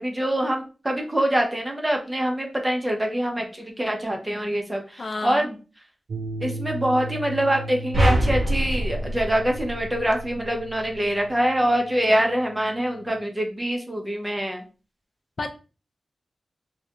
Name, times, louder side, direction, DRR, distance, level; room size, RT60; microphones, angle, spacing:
voice 1, 0.0-5.6 6.4-14.6, right 1 dB, 20° right, 2 dB, 0.6 m, -25 dB
voice 2, 5.0-5.5 15.4-15.5, left 3 dB, 60° left, 5 dB, 0.3 m, -30 dB
sound 1, 6.1-13.2, right 1 dB, 80° right, 0.3 m, -37 dB
sound 2, 7.9-10.3, equal, 50° right, 0.8 m, -24 dB
2.4 x 2.1 x 2.8 m, 0.34 s
wide cardioid pair, 75°, 0 cm